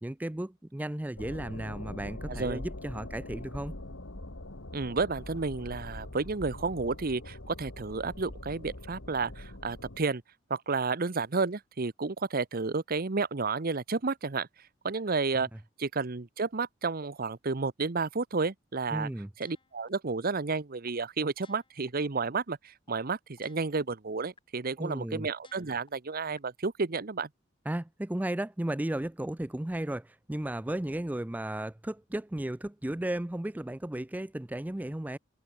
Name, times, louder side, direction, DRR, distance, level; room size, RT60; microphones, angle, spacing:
voice 1, 0.0-3.7 15.4-15.5 18.9-19.3 24.8-25.3 27.7-35.2, right 1 dB, 10° right, 0.4 m, -34 dB
sound 1, 1.2-10.0, left 1 dB, 90° left, 2.5 m, -43 dB
voice 2, 2.3-2.6 4.7-10.2 10.5-14.5 14.8-15.5 15.8-19.1 19.4-27.3, right 4 dB, 50° right, 0.9 m, -31 dB
sound 2, 19.4-19.9 20.4-20.5 20.9-21.0 21.4-21.9 22.4-22.5 22.9-23.0 23.4-23.9 24.4-24.5 24.9-25.0 25.4-25.9 26.4-26.5, left 5 dB, 25° left, 3.2 m, -59 dB
head